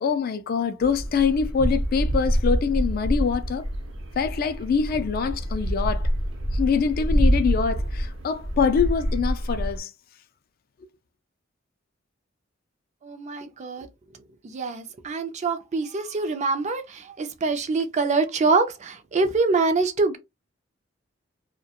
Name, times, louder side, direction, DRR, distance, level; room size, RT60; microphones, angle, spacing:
voice 1, 0.0-3.7 4.2-6.1 6.5-9.9, left 6 dB, 50° left, 0.3 m, -24 dB
sound 1, 0.8-9.8, equal, 70° right, 0.7 m, -26 dB
voice 2, 13.0-13.9 14.4-20.2, right 3 dB, 35° right, 0.4 m, -25 dB
2.2 x 2.1 x 2.8 m
head